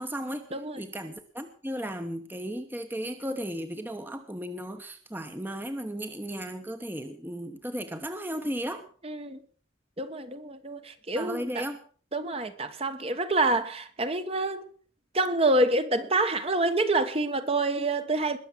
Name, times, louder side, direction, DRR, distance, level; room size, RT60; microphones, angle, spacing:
voice 1, 0.0-0.5 0.8-8.8 11.1-11.8, equal, 10° right, 1.0 m, -35 dB
voice 2, 9.0-9.4 10.0-11.6 12.1-14.7 15.1-18.4, right 2 dB, 30° right, 1.1 m, -27 dB
20.5 x 7.2 x 6.3 m
head